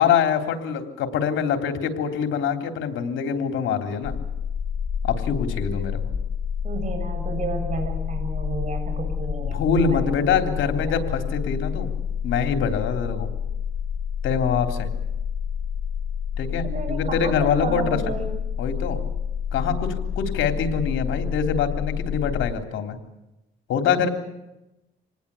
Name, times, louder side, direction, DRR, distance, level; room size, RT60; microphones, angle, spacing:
voice 1, 0.0-4.1 5.0-6.1 9.5-11.9 12.2-13.3 14.2-14.9 16.4-18.0 18.6-19.1 19.5-23.0 23.7-24.1, left 7 dB, 80° left, 6 dB, 3.5 m, -24 dB
sound 1, 4.0-22.5, left 7 dB, 40° left, 2.1 m, -28 dB
voice 2, 6.6-9.6 9.8-11.2 16.3-18.3, right 3 dB, 40° right, 4 dB, 7.6 m, -32 dB
26.5 x 19.5 x 8.4 m, 0.93 s
cardioid pair, 90°, 20 cm